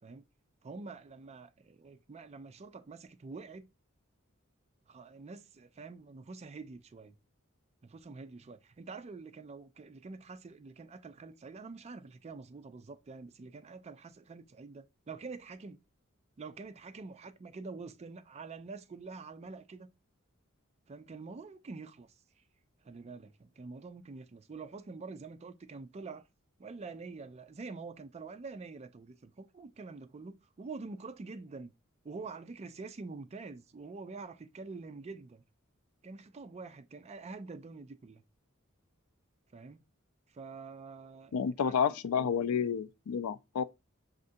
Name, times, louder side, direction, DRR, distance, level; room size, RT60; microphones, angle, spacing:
voice 1, 0.6-3.7 4.9-7.1 7.8-15.8 16.4-19.9 20.9-22.1 22.8-26.3 26.6-31.7 32.0-35.4 36.0-38.2 39.5-39.8 40.3-42.3, right 4 dB, 30° right, 0.4 m, -46 dB
voice 2, 41.3-43.6, left 7 dB, 90° left, 0.4 m, -30 dB
6.4 x 2.5 x 2.6 m
head